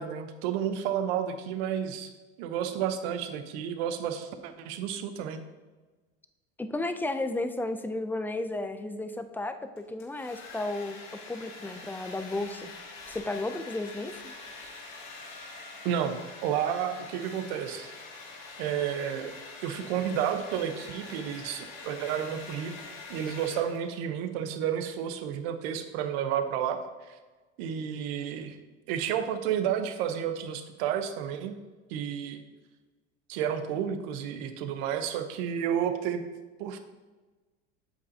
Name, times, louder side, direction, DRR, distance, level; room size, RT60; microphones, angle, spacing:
voice 1, 0.0-2.1 2.4-5.4 15.8-17.9 18.6-22.7 23.1-27.2 27.6-28.6 28.9-31.5 31.9-32.4 33.3-36.2 36.6-36.8, right 9 dB, 70° right, 8 dB, 0.9 m, -31 dB
voice 2, 6.6-11.0 11.3-12.7 13.1-14.3, left 2 dB, 5° left, 9 dB, 0.4 m, -33 dB
Domestic sounds home sounds, 9.8-24.0, left 3 dB, 75° left, 2.4 m, -45 dB
8.3 x 7.0 x 2.7 m, 1.3 s
supercardioid pair, 115°, 32 cm